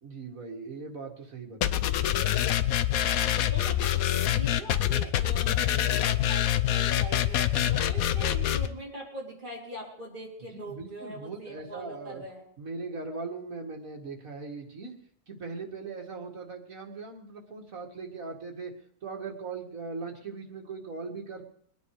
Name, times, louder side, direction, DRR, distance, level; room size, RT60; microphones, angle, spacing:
voice 1, 0.0-2.2 10.6-12.2 12.6-15.0 15.3-18.7 19.0-21.4, right 4 dB, 75° right, 1 dB, 2.5 m, -39 dB
sound 1, 1.6-8.7, left 11 dB, 90° left, 1.2 m, -25 dB
voice 2, 3.1-3.9 4.3-12.4, right 1 dB, 35° right, -4 dB, 3.8 m, -42 dB
22.0 x 9.5 x 4.9 m, 0.62 s
omnidirectional pair, 1.4 m